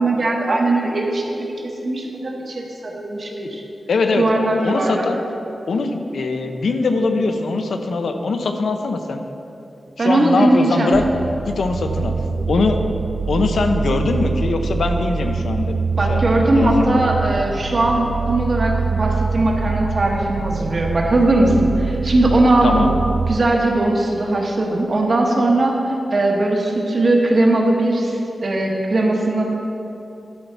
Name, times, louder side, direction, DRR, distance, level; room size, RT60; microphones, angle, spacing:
voice 1, 0.0-3.6 4.1-5.1 10.0-10.9 16.0-22.9 23.3-25.8 26.1-28.1 28.4-29.4, right 2 dB, 45° right, 0 dB, 1.1 m, -19 dB
voice 2, 3.9-5.2 5.7-9.2 10.0-11.0 11.5-12.1 12.5-12.8 13.3-15.8 16.1-17.1 22.6-22.9, left 3 dB, 80° left, 6 dB, 0.6 m, -21 dB
sound 1, 10.9-23.4, right 5 dB, 80° right, 0.3 m, -24 dB
11.5 x 5.5 x 4.5 m, 2.9 s
wide cardioid pair, 155°, 0 cm